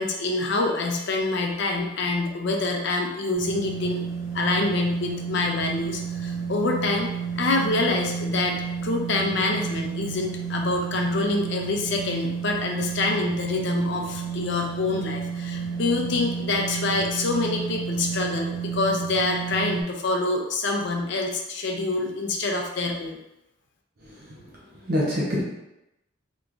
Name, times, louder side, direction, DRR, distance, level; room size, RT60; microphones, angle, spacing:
voice 1, 0.0-4.0 4.3-7.1 7.4-23.2, left 2 dB, 60° left, 1 dB, 0.5 m, -26 dB
sound 1, 3.3-19.8, right 6 dB, 65° right, 0.9 m, -31 dB
voice 2, 24.0-24.4 24.9-25.4, equal, 45° right, -5 dB, 0.8 m, -26 dB
3.5 x 3.0 x 2.5 m, 0.90 s
head